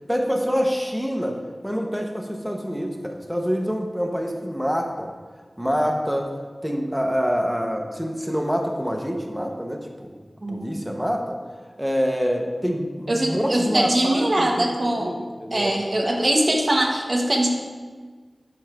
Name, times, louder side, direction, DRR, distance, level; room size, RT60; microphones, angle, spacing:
voice 1, 0.1-1.4 1.6-5.1 5.6-6.3 6.6-10.1 10.5-11.4 11.8-14.7 14.9-15.7, equal, 5° right, 2 dB, 0.9 m, -26 dB
voice 2, 13.1-15.1 15.5-17.5, right 1 dB, 55° right, 1 dB, 1.0 m, -22 dB
9.2 x 5.5 x 2.5 m, 1.5 s
wide cardioid pair, 45°, 0 cm